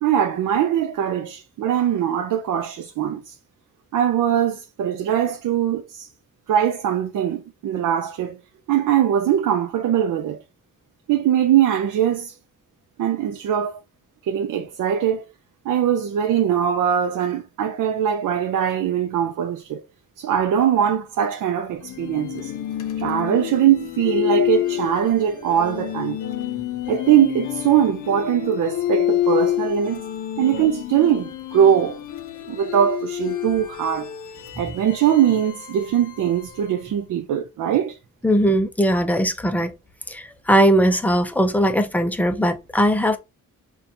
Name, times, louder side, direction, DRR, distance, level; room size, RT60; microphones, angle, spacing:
voice 1, 0.0-3.4 3.9-6.1 6.5-8.4 8.7-10.4 11.1-12.4 13.0-13.8 14.2-15.3 15.7-19.8 20.2-22.5 23.0-26.2 26.9-30.0 30.4-32.0 32.5-34.1 34.6-38.0, right 9 dB, 75° right, 0.5 m, -21 dB
sound 1, 21.8-36.9, left 13 dB, 75° left, 0.6 m, -28 dB
voice 2, 38.2-39.7 40.1-43.2, equal, 5° left, 0.3 m, -19 dB
5.7 x 2.3 x 2.6 m
wide cardioid pair, 160°, 31 cm